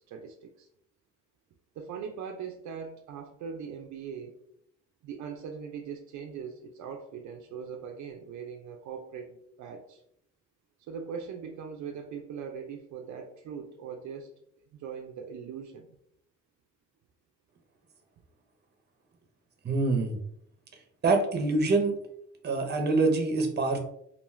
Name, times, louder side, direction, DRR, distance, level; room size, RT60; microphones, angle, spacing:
voice 1, 0.1-0.7 1.8-4.4 5.0-10.0 10.8-14.3 14.7-15.9, right 6 dB, 70° right, 3 dB, 0.4 m, -40 dB
voice 2, 19.6-20.2 21.0-21.9 22.4-23.8, right 3 dB, 35° right, 4 dB, 0.7 m, -25 dB
2.4 x 2.2 x 3.1 m, 0.71 s
cardioid pair, 90°, 30 cm